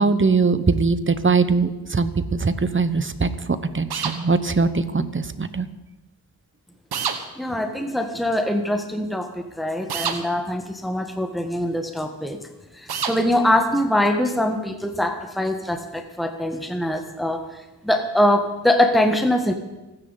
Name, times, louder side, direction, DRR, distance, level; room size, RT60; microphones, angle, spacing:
voice 1, 0.0-5.7, right 4 dB, 30° right, 12 dB, 1.1 m, -21 dB
sound 1, 3.9-4.2 6.9-7.2 9.9-10.2 12.9-13.2, right 7 dB, 75° right, 1.4 m, -26 dB
voice 2, 7.4-12.4 12.7-19.5, left 1 dB, ahead, 5 dB, 1.4 m, -23 dB
26.0 x 10.0 x 4.1 m, 1.0 s
cardioid pair, 65°, 39 cm